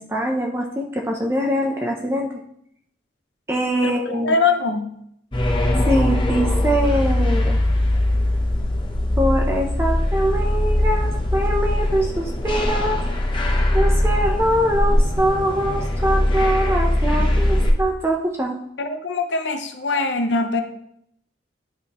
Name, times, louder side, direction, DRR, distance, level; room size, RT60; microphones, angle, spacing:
voice 1, 0.0-2.3 3.5-4.4 5.9-7.6 9.2-13.0 13.7-18.6, equal, 15° right, 0 dB, 0.6 m, -23 dB
voice 2, 3.8-4.9 18.8-20.6, left 3 dB, 65° left, 7 dB, 0.8 m, -22 dB
sound 1, 5.3-17.7, left 1 dB, 25° left, 0.8 m, -20 dB
10.5 x 5.0 x 3.0 m, 0.72 s
head